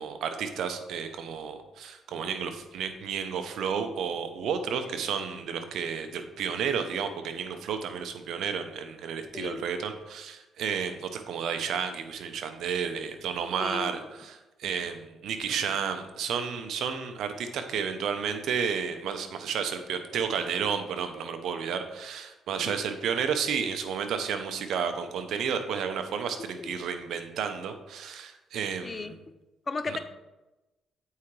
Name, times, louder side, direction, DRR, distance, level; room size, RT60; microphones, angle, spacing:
voice 1, 0.0-29.2 29.9-30.0, right 7 dB, 75° right, 8 dB, 0.7 m, -32 dB
voice 2, 13.6-13.9 22.6-22.8 26.6-26.7 28.8-29.1 29.7-30.0, left 4 dB, 30° left, 11 dB, 0.5 m, -34 dB
8.3 x 4.8 x 3.3 m, 1.0 s
cardioid pair, 90°, 0 cm